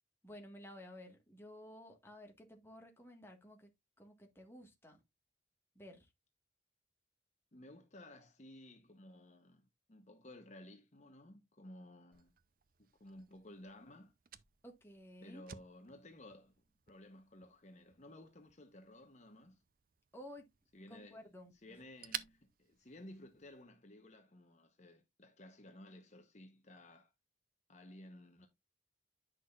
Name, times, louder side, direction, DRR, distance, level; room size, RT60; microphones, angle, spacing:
voice 1, 0.2-3.7 4.0-5.0 5.7-6.1 14.6-15.4 20.1-20.5 20.9-21.8, equal, 15° left, 1.6 m, -54 dB
voice 2, 7.5-12.3 12.8-14.1 15.2-16.5 16.9-19.6 20.7-21.2 21.6-27.1 27.7-28.5, left 1 dB, 40° left, 0.9 m, -56 dB
Fire, 12.1-23.6, right 10 dB, 50° right, 0.6 m, -54 dB
9.6 x 6.2 x 2.4 m
head